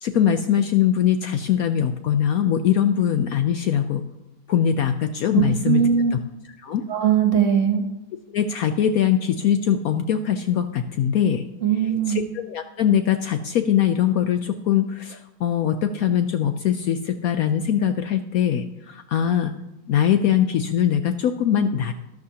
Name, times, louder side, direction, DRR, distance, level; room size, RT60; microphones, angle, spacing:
voice 1, 0.0-4.1 4.5-5.8 6.1-6.2 6.6-6.8 8.3-11.4 12.1-19.5 19.9-21.9, left 9 dB, 90° left, 8 dB, 0.7 m, -22 dB
voice 2, 5.3-6.1 6.9-7.8 11.6-12.2, right 8 dB, 45° right, 5 dB, 1.3 m, -20 dB
13.0 x 13.0 x 2.8 m, 0.97 s
omnidirectional pair, 2.1 m